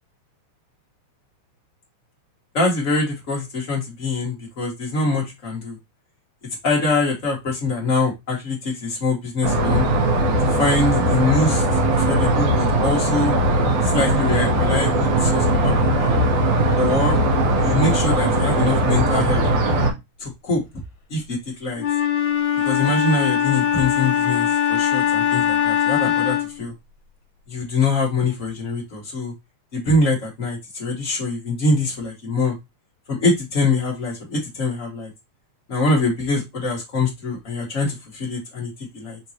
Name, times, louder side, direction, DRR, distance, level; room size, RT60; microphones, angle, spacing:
voice 1, 2.5-5.8 6.6-9.9 10.4-11.6 11.9-13.3 13.8-16.2 16.8-17.2 17.6-19.4 20.2-20.6 21.1-21.8 22.6-26.7 27.5-29.3 29.7-32.5 33.1-35.1 35.7-39.2, left 3 dB, 75° left, -3 dB, 0.7 m, -24 dB
sound 1, 9.4-19.9, right 1 dB, 75° right, 2.4 m, -19 dB
Wind instrument woodwind instrument, 21.8-26.6, left 10 dB, 60° left, 1.3 m, -21 dB
5.2 x 3.0 x 2.7 m, 0.21 s
omnidirectional pair, 3.4 m